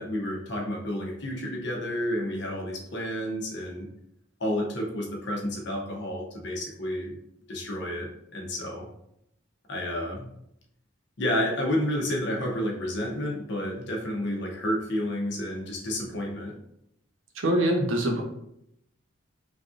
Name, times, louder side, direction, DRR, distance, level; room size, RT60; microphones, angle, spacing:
voice 1, 0.0-3.9 4.4-7.2 7.5-8.9 9.7-10.3 11.2-16.6, left 1 dB, 60° left, 0 dB, 0.7 m, -30 dB
voice 2, 17.4-18.2, right 1 dB, 85° right, 2 dB, 0.6 m, -24 dB
3.2 x 2.6 x 2.4 m, 0.77 s
head